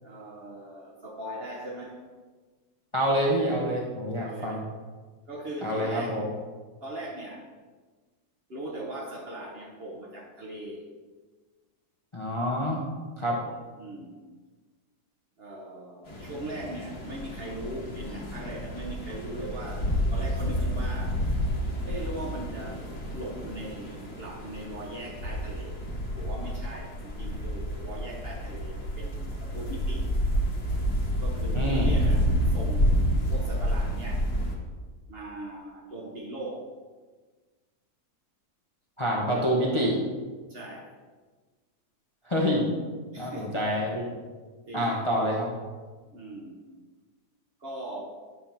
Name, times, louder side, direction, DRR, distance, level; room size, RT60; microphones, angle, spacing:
voice 1, 0.0-2.0 4.2-4.6 5.3-6.2 6.8-7.5 8.5-10.8 13.8-14.2 15.4-21.2 21.8-30.1 31.2-34.3 35.1-36.7 40.5-40.9 43.1-43.6 44.7-44.9 46.1-46.6 47.6-48.0, right 1 dB, 45° right, -2 dB, 1.1 m, -39 dB
voice 2, 2.9-4.6 5.6-6.3 12.1-12.8 13.2-13.4 31.5-31.9 39.0-40.0 42.3-42.6 43.2-44.1 44.7-45.7, equal, 25° left, -3 dB, 0.8 m, -27 dB
sound 1, 16.1-34.5, equal, 65° left, 1.9 m, -29 dB
8.9 x 3.5 x 5.8 m, 1.4 s
omnidirectional pair, 1.7 m